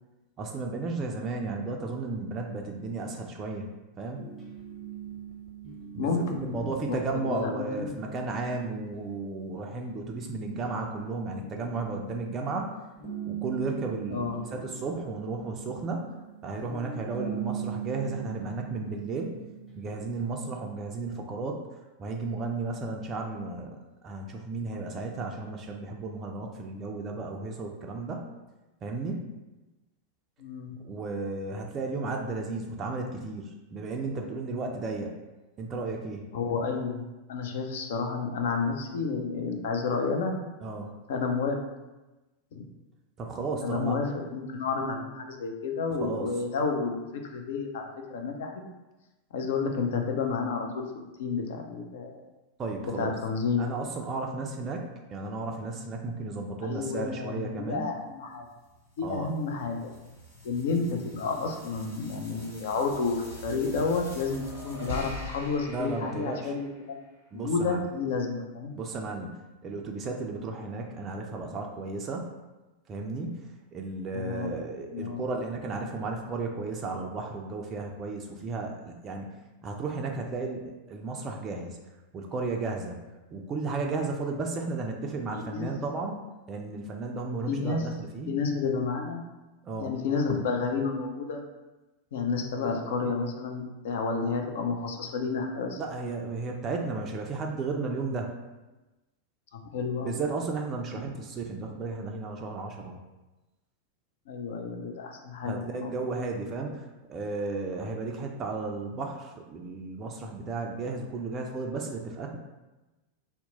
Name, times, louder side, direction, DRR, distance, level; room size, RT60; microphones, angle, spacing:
voice 1, 0.4-3.7 4.0-4.2 5.9-12.7 13.2-16.1 16.4-19.4 19.8-21.6 22.0-23.8 24.0-28.2 28.8-29.3 30.8-35.1 35.6-36.2 40.6-40.9 43.2-44.0 46.0-46.3 52.6-53.1 53.6-57.9 59.0-59.3 65.7-66.5 67.3-67.8 68.8-72.3 72.9-79.3 79.6-81.8 82.1-83.0 83.3-86.2 86.5-88.3 89.6-89.9 95.8-98.4 100.0-103.0 105.5-112.4, right 3 dB, 25° right, 1 dB, 0.3 m, -34 dB
sound 1, 4.1-12.6 13.0-20.2, right 8 dB, 5° left, 0.8 m, -41 dB
voice 2, 6.0-8.1 14.1-14.5 30.4-30.8 36.3-37.0 37.3-40.4 41.1-41.6 42.5-42.6 43.6-47.8 48.1-48.5 49.3-50.8 51.2-52.2 53.0-53.7 56.6-58.5 59.0-59.9 60.4-67.0 67.4-68.8 74.1-74.5 74.9-75.2 85.3-85.7 87.5-87.9 88.3-89.2 89.8-91.4 92.1-95.8 99.5-100.2 104.3-106.0, left 4 dB, 55° left, 3 dB, 0.4 m, -30 dB
sound 2, 58.5-67.1, equal, 85° left, 1.3 m, -44 dB
2.8 x 2.1 x 3.9 m, 1.1 s
figure-of-eight pair, 90°, 0 cm